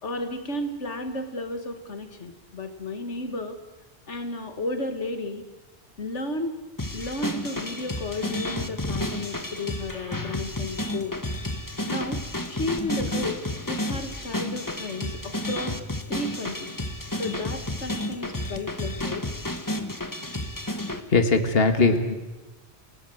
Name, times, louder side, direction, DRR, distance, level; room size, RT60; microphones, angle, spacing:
voice 1, 0.0-3.6 4.1-5.4 6.0-6.6 6.9-11.2 11.9-12.2 12.5-13.4 13.7-15.8 16.1-16.7 17.2-19.2, left 2 dB, 90° left, 7 dB, 2.1 m, -33 dB
sound 1, 6.8-21.0, left 1 dB, 15° left, 1.5 m, -31 dB
voice 2, 20.9-22.1, left 3 dB, 60° left, 7 dB, 2.0 m, -21 dB
28.5 x 19.0 x 7.9 m, 1.1 s
omnidirectional pair, 1.2 m